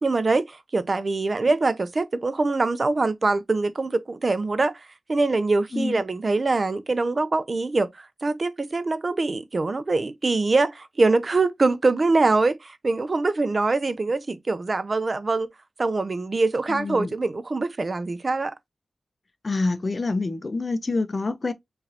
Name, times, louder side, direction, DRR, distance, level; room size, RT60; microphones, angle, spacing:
voice 1, 0.0-4.8 5.1-7.9 8.2-15.5 15.8-18.5, right 3 dB, 45° right, 0.5 m, -23 dB
voice 2, 16.7-17.1 19.4-21.5, left 3 dB, 40° left, 0.6 m, -26 dB
4.9 x 3.1 x 2.7 m
wide cardioid pair, 90°, 0 cm